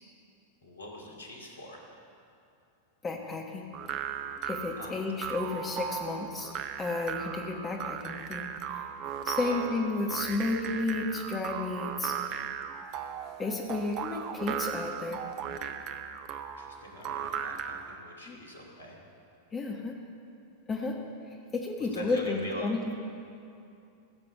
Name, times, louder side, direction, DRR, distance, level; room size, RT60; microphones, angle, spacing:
voice 1, 0.6-1.8 4.8-4.9 9.4-9.6 14.1-14.2 16.6-19.0 21.8-22.7, left 1 dB, 70° left, 0 dB, 2.4 m, -43 dB
voice 2, 3.0-3.6 4.5-6.5 6.8-8.5 8.7-8.8 9.2-12.1 13.4-15.2 18.3-18.4 19.5-19.9 20.7-21.0 21.5-22.9, left 3 dB, 20° left, 1 dB, 1.3 m, -32 dB
sound 1, 3.7-17.9, right 8 dB, 40° right, 0.8 m, -37 dB
15.0 x 7.5 x 8.2 m, 2.6 s
figure-of-eight pair, 90°, 0 cm